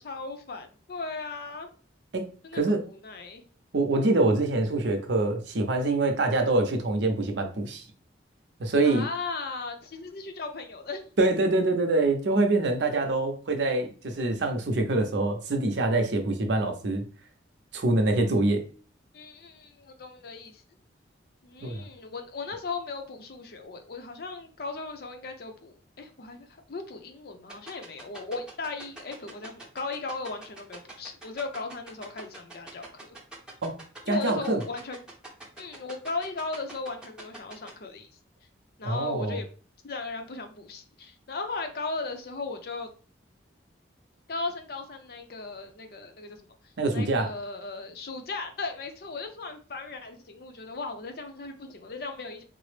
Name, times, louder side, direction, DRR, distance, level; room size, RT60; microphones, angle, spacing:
voice 1, 0.0-1.7 2.4-3.4 8.8-11.3 19.1-20.6 21.4-33.2 34.1-35.0 35.6-38.1 38.8-39.5 39.8-42.9 44.3-46.4 46.9-52.4, left 3 dB, 55° left, 0.5 m, -37 dB
voice 2, 2.1-2.8 3.7-7.8 8.6-9.0 11.2-17.0 17.7-18.7 21.6-21.8 33.6-33.8 34.1-34.6 38.8-39.4 46.8-47.3, right 2 dB, 70° right, 0.6 m, -25 dB
sound 1, 27.5-37.7, right 2 dB, 5° right, 0.7 m, -43 dB
3.8 x 2.0 x 3.2 m
head